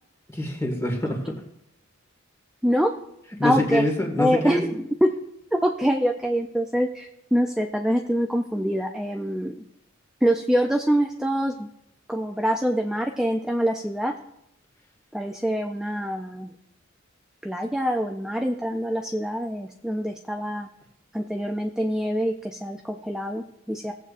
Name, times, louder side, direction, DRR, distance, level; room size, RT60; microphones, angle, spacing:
voice 1, 0.3-1.2 3.4-4.6, left 1 dB, 15° left, 0 dB, 1.7 m, -25 dB
voice 2, 2.6-2.9 3.4-3.9 4.2-5.1 5.5-9.5 10.2-11.7 12.1-14.1 15.1-16.5 17.4-20.7 21.1-23.9, equal, 5° right, 3 dB, 0.4 m, -25 dB
18.0 x 8.1 x 2.5 m, 0.79 s
head